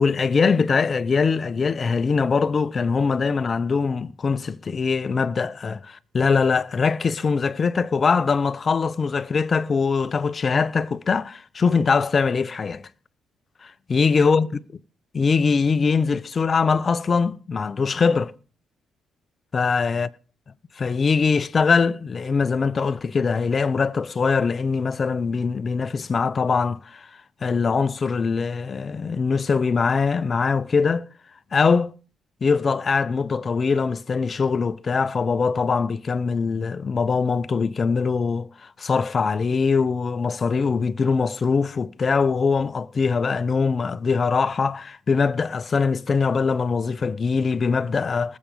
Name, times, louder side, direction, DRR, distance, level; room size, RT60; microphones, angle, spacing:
voice 1, 0.0-12.8 13.6-14.5 15.1-18.3 19.5-20.1 20.8-27.1 27.4-31.1 31.5-31.9 32.4-48.4, left 5 dB, 40° left, 0.8 m, -22 dB
19.0 x 7.5 x 5.3 m
cardioid pair, 90°, 0 cm